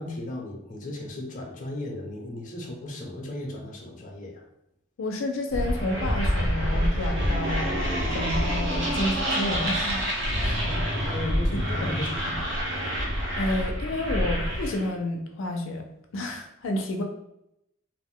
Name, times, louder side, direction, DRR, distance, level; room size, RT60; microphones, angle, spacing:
voice 1, 0.0-4.4 10.6-12.7, left 1 dB, 40° left, 0 dB, 0.6 m, -36 dB
voice 2, 5.0-10.1 10.4-10.7 11.5-11.9 12.3-12.4 13.4-15.8 16.1-17.0, left 1 dB, 90° left, 2 dB, 0.4 m, -30 dB
sound 1, 5.5-14.9, equal, 65° right, 0.7 m, -27 dB
2.4 x 2.1 x 3.6 m, 0.83 s
head